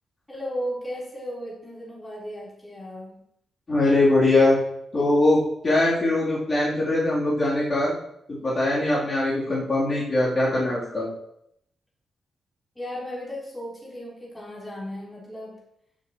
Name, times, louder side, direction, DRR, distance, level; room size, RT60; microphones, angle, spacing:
voice 1, 0.3-3.2 12.7-15.6, equal, 10° left, -7 dB, 4.0 m, -35 dB
voice 2, 3.7-4.6 4.9-7.9 8.4-11.1, left 2 dB, 30° left, -9 dB, 3.4 m, -21 dB
15.5 x 7.5 x 3.1 m, 0.74 s
wide cardioid pair, 170°, 0 cm